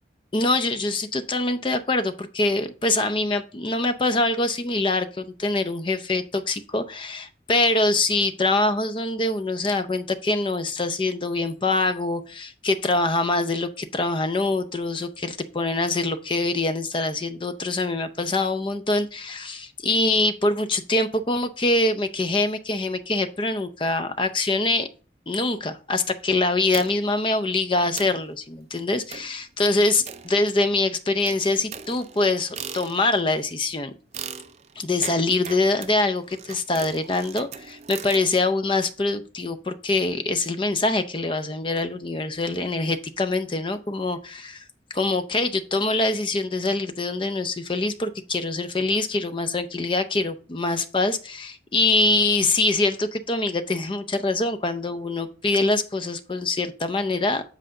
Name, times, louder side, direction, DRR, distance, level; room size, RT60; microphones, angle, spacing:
voice 1, 0.3-24.9 25.3-33.9 34.8-44.6 44.9-57.4, left 2 dB, 25° left, 10 dB, 0.5 m, -24 dB
sound 1, 26.7-27.2 27.6-27.7 28.0-28.3 29.1-29.4 30.1-30.8 31.3-33.3 34.1-38.3, right 7 dB, 35° right, 0.4 m, -39 dB
7.8 x 4.9 x 3.8 m, 0.39 s
head